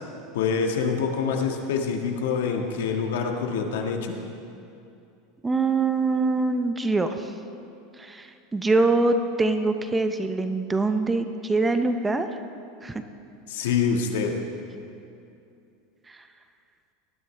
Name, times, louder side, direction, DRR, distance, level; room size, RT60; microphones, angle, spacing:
voice 1, 0.3-4.2 13.5-14.3, left 6 dB, 85° left, 3 dB, 1.6 m, -26 dB
voice 2, 5.4-7.3 8.0-12.3 12.8-13.0 16.1-16.2, right 3 dB, 10° right, 8 dB, 0.5 m, -24 dB
18.5 x 13.0 x 3.3 m, 2.7 s
supercardioid pair, 155°, 0 cm